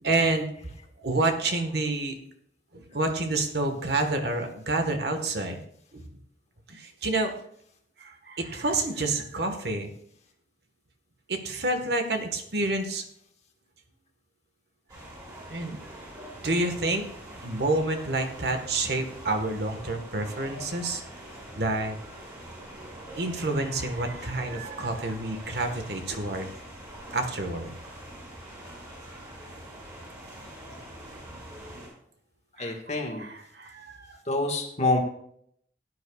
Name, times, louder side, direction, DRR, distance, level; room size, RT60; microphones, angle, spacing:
voice 1, 0.0-0.5 1.0-2.2 2.7-5.6 5.9-6.0 6.7-7.3 8.0-9.9 11.3-13.0 15.5-15.8 16.4-17.1 17.4-21.0 21.6-22.0 23.2-26.5 27.1-27.7 32.6-34.2, right 2 dB, 65° right, 5 dB, 1.4 m, -28 dB
sound 1, 14.9-31.9, right 1 dB, 20° right, 5.2 m, -44 dB
voice 2, 32.6-33.2 34.3-35.0, left 2 dB, 40° left, 3 dB, 1.6 m, -26 dB
17.0 x 9.8 x 2.4 m, 0.69 s
head